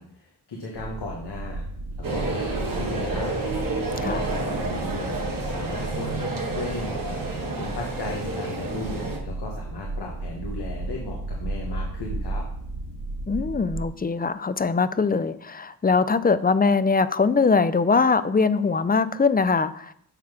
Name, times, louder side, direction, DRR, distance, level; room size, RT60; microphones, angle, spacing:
voice 1, 0.0-1.6 2.0-3.3 4.1-5.2 5.4-12.4, left 3 dB, 75° left, -2 dB, 1.5 m, -36 dB
sound 1, 0.7-13.8, right 2 dB, 85° right, 1.1 m, -34 dB
sound 2, 2.0-9.2, right 2 dB, 55° right, 1.6 m, -29 dB
voice 2, 13.3-19.9, left 4 dB, 25° left, 14 dB, 0.4 m, -22 dB
8.7 x 3.9 x 5.9 m, 0.70 s
wide cardioid pair, 110°, 41 cm